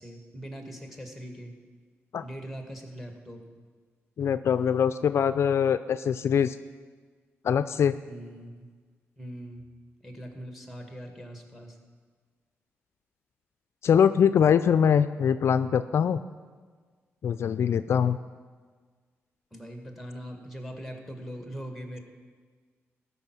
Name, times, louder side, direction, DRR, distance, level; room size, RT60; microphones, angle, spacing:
voice 1, 0.0-1.5 2.2-3.4 8.1-8.7 9.2-9.6 10.0-11.8 19.5-22.0, equal, ahead, 4 dB, 1.9 m, -41 dB
voice 2, 4.2-6.6 7.4-8.0 13.8-16.2 17.2-18.2, left 8 dB, 65° left, 12 dB, 0.3 m, -23 dB
14.0 x 5.6 x 6.1 m, 1.5 s
cardioid pair, 70°, 5 cm